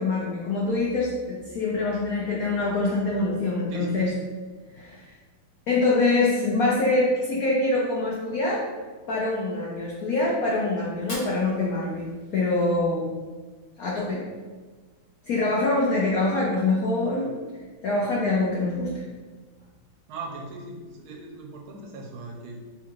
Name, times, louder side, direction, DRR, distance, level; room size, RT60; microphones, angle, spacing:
voice 1, 0.0-4.2 4.7-5.1 5.7-8.6 9.1-13.1 13.8-14.3 15.2-17.3 17.8-19.0, left 2 dB, 80° left, -4 dB, 0.8 m, -25 dB
voice 2, 3.7-4.0 20.1-22.6, right 3 dB, 80° right, 0 dB, 1.5 m, -39 dB
Fire, 10.9-12.9, left 1 dB, 45° left, 0.7 m, -43 dB
3.8 x 2.4 x 4.4 m, 1.4 s
omnidirectional pair, 2.3 m